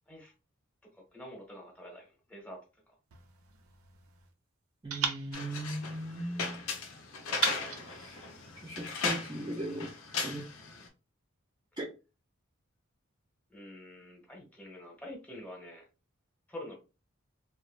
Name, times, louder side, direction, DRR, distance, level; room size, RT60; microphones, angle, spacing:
voice 1, 0.9-2.6 2.9-3.0 13.5-15.9 16.5-16.8, left 1 dB, 5° left, -1 dB, 0.8 m, -47 dB
sound 1, 3.1-4.3 4.9-6.5 7.3-8.9, right 6 dB, 85° right, 0.5 m, -38 dB
voice 2, 4.8-6.6 7.9-8.3 8.6-10.5 11.8-11.9, right 1 dB, 20° right, -1 dB, 0.3 m, -38 dB
sound 2, 5.3-10.9, left 4 dB, 85° left, 0.6 m, -37 dB
2.8 x 2.0 x 2.4 m, 0.31 s
head